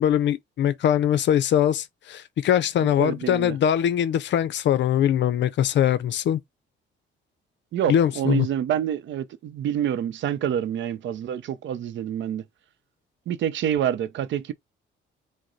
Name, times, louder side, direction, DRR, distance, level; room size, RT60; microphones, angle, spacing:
voice 1, 0.0-6.4 7.9-8.5, left 10 dB, 65° left, 0.5 m, -22 dB
voice 2, 3.0-3.6 7.7-12.4 13.3-14.5, right 10 dB, 70° right, 0.6 m, -27 dB
4.9 x 2.1 x 3.9 m
cardioid pair, 90°, 20 cm